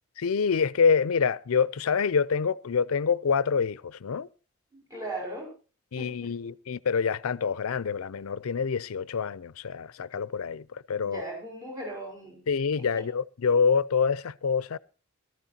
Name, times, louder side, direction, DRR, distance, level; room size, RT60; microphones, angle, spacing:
voice 1, 0.2-4.3 5.9-11.2 12.5-14.8, left 6 dB, 85° left, 0.5 m, -26 dB
voice 2, 4.7-5.5 6.0-6.3 11.0-12.4 12.7-13.1, right 1 dB, 15° right, 5.4 m, -38 dB
18.0 x 13.0 x 2.8 m
head